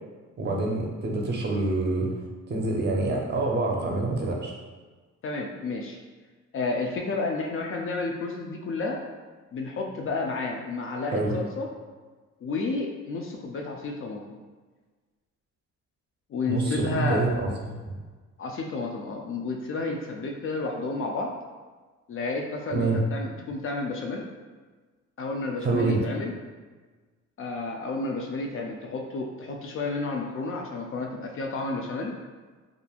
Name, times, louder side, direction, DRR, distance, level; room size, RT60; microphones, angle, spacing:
voice 1, 0.4-2.1 2.5-4.5 11.1-11.3 16.5-17.9 22.7-23.0 25.6-26.0, right 2 dB, 35° right, -1 dB, 0.6 m, -26 dB
voice 2, 5.2-6.0 6.5-9.0 9.5-11.7 12.4-14.4 16.3-17.3 18.4-21.4 22.1-24.3 25.2-26.3 27.4-32.2, left 3 dB, 45° left, 1 dB, 0.4 m, -31 dB
2.9 x 2.5 x 2.3 m, 1.4 s
cardioid pair, 90°, 30 cm